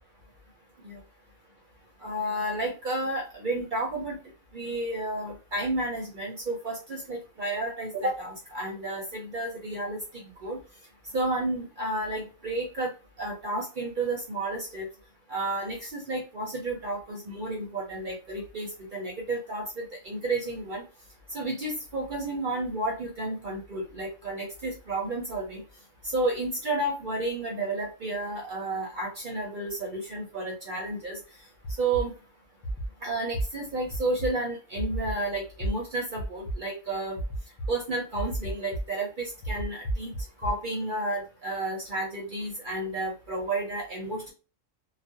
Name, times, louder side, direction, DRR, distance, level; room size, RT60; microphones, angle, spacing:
voice 1, 2.0-4.2 4.5-10.6 11.1-12.9 13.2-14.9 15.3-20.8 21.3-25.6 26.1-31.2 31.8-32.1 33.0-37.2 37.7-40.1 40.4-44.3, right 2 dB, 55° right, -1 dB, 0.5 m, -31 dB
sound 1, 31.6-32.0 32.6-32.9 33.3-33.4 33.9-34.3 34.8-35.1 35.6-35.7 36.2-36.6 37.2-37.7 38.2-38.8 39.4-40.5, right 1 dB, 65° left, 0.7 m, -31 dB
2.3 x 2.0 x 2.6 m, 0.34 s
omnidirectional pair, 1.4 m